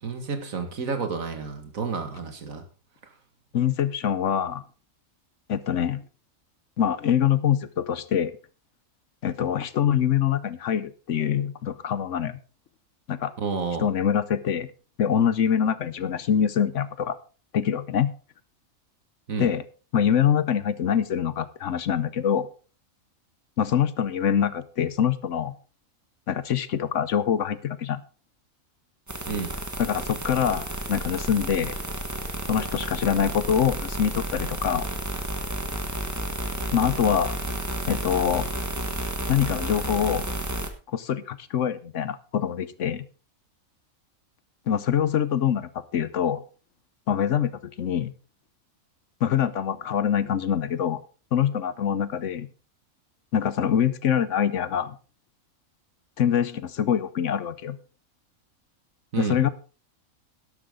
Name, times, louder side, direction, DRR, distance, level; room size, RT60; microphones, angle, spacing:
voice 1, 0.0-2.6 13.4-13.9 19.3-19.5 29.3-29.5 59.1-59.4, right 5 dB, 75° right, 7 dB, 2.2 m, -30 dB
voice 2, 3.5-4.6 5.5-6.0 6.8-8.3 9.2-12.4 13.1-13.3 13.8-14.7 15.0-17.2 17.5-18.1 19.4-19.6 19.9-22.5 23.6-25.5 26.3-28.0 29.8-31.7 32.5-34.9 36.7-37.4 37.9-38.5 39.3-40.2 40.9-43.0 44.7-46.4 47.1-47.5 47.8-48.1 49.2-51.0 51.3-52.5 53.3-54.9 56.2-57.8 59.2-59.5, left 8 dB, 65° left, 16 dB, 1.0 m, -24 dB
sound 1, 29.1-40.7, right 1 dB, 15° right, 1.3 m, -31 dB
12.0 x 12.0 x 3.8 m, 0.35 s
omnidirectional pair, 1.5 m